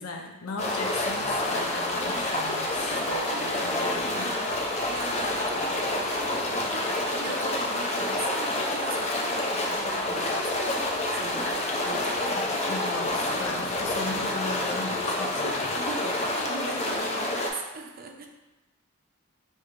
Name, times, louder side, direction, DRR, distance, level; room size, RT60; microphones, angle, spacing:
voice 1, 0.0-4.3 12.7-15.8, left 3 dB, 80° left, 2 dB, 0.6 m, -37 dB
sound 1, 0.6-17.5, left 1 dB, 30° left, 0.5 m, -28 dB
voice 2, 3.3-4.6 4.9-12.7 15.7-18.3, right 3 dB, 45° right, 3 dB, 0.5 m, -40 dB
6.0 x 2.7 x 2.5 m, 1.0 s
head